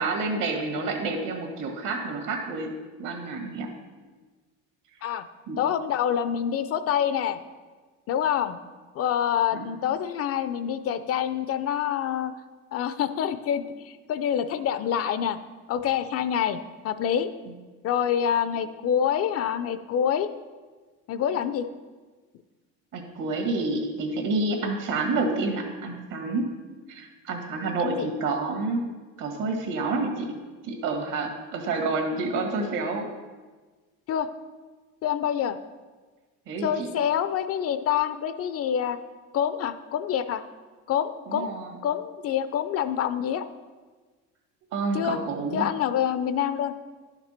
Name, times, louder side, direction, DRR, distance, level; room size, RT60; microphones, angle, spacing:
voice 1, 0.0-2.7 3.0-3.7 5.5-5.6 9.5-9.7 17.5-17.6 22.9-26.5 26.9-28.8 29.2-30.3 30.6-33.0 36.5-36.9 41.3-41.7 44.7-45.7, right 3 dB, 70° right, 2 dB, 1.8 m, -29 dB
voice 2, 5.6-7.4 8.1-8.6 9.0-12.3 12.7-15.4 15.7-16.6 16.8-17.3 17.8-20.3 21.1-21.7 27.8-28.1 34.1-34.3 35.0-35.6 36.6-39.0 39.3-40.4 40.9-41.5 41.8-43.4 44.9-45.2 45.5-46.7, left 9 dB, 45° left, 12 dB, 0.4 m, -26 dB
11.0 x 6.0 x 4.3 m, 1.4 s
cardioid pair, 135°, 34 cm